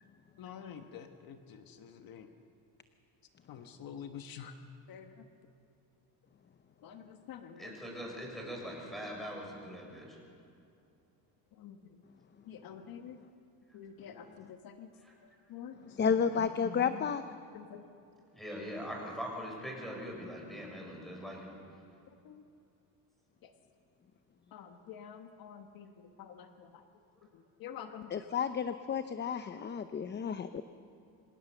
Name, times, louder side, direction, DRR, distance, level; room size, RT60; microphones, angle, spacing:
voice 1, 0.4-2.3 3.5-4.5 4.9-5.3 6.8-7.8 11.5-12.0 12.4-13.2 13.7-14.9 15.2-17.1 17.5-17.8 22.2-22.4 23.4-23.5 24.5-26.8 27.3-28.1, left 8 dB, 65° left, 6 dB, 1.3 m, -48 dB
voice 2, 7.6-10.2 15.0-15.1 18.3-21.6, equal, ahead, -2 dB, 6.8 m, -42 dB
voice 3, 16.0-17.2 28.1-30.6, left 6 dB, 30° left, 10 dB, 0.6 m, -31 dB
25.0 x 18.0 x 6.9 m, 2.6 s
cardioid pair, 115°, 38 cm